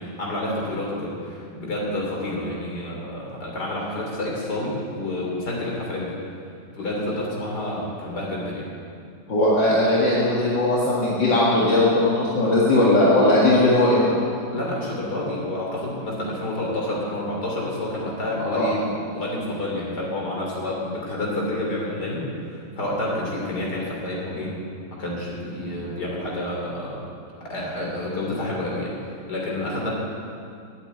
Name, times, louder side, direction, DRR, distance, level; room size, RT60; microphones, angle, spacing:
voice 1, 0.0-6.2 6.7-8.7 14.5-24.5 24.9-27.1 27.4-29.9, left 1 dB, 60° left, -3 dB, 3.7 m, -29 dB
voice 2, 9.3-14.2 18.4-18.7, left 1 dB, 80° left, -7 dB, 2.6 m, -19 dB
11.5 x 8.4 x 9.2 m, 2.4 s
omnidirectional pair, 2.0 m